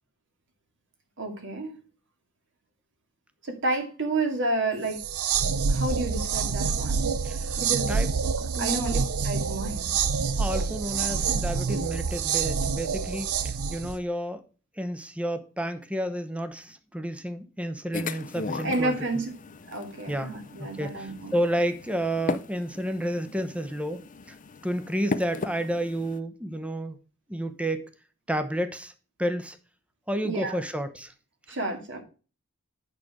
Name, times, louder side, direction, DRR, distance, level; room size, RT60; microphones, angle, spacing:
voice 1, 1.2-1.8 3.4-5.0 5.7-7.1 7.6-8.0 8.6-9.9 18.6-19.3 19.7-21.3 30.2-30.6 31.5-32.0, right 2 dB, 60° right, 2.2 m, -30 dB
sound 1, 4.9-14.0, right 5 dB, 85° right, 0.7 m, -27 dB
voice 2, 7.2-7.6 7.9-8.1 8.5-9.0 10.4-14.4 14.8-19.0 20.1-20.3 20.6-24.0 24.3-24.4 24.6-27.0 27.3-27.9 28.3-28.9 29.2-29.6 30.1-31.1, right 1 dB, 5° right, 0.9 m, -31 dB
sound 2, 17.9-26.2, left 3 dB, 40° left, 0.6 m, -37 dB
8.8 x 6.1 x 4.8 m
head